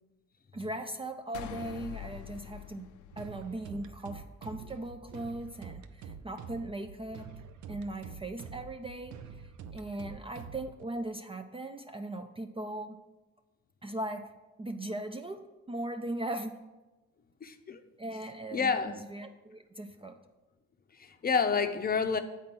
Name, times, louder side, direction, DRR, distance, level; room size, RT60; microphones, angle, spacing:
voice 1, 0.5-7.3 7.7-13.0 13.8-14.3 14.6-16.5 18.0-20.2, right 1 dB, 20° right, 7 dB, 0.4 m, -39 dB
sound 1, 1.3-3.9, left 11 dB, 75° left, 0.5 m, -44 dB
sound 2, 3.1-10.8, right 6 dB, 75° right, 0.6 m, -46 dB
voice 2, 17.4-17.8 18.5-19.0 20.9-22.2, left 5 dB, 30° left, 8 dB, 0.6 m, -29 dB
8.2 x 4.3 x 5.9 m, 1.1 s
cardioid pair, 90°, 30 cm